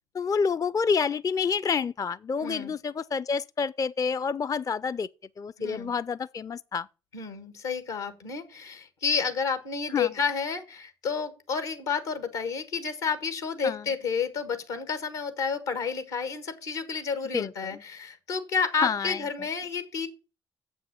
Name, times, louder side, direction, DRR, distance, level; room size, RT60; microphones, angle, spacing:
voice 1, 0.1-5.1 5.4-6.9 9.9-10.1 13.6-13.8 17.3-17.7 18.8-19.2, left 5 dB, 25° left, 0.4 m, -28 dB
voice 2, 2.4-2.7 5.6-5.9 7.1-20.1, left 5 dB, 80° left, 1.5 m, -30 dB
7.6 x 6.2 x 6.9 m
hypercardioid pair, 45°, 13 cm